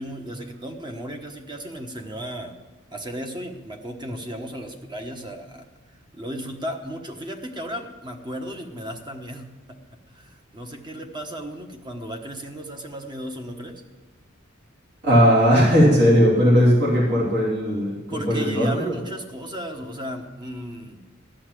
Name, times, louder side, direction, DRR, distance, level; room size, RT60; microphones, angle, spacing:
voice 1, 0.0-2.6 2.9-5.7 6.1-13.8 18.1-21.0, equal, 20° right, 4 dB, 1.2 m, -35 dB
voice 2, 15.0-19.0, equal, 55° right, -6 dB, 3.0 m, -18 dB
14.5 x 5.7 x 9.8 m, 1.2 s
head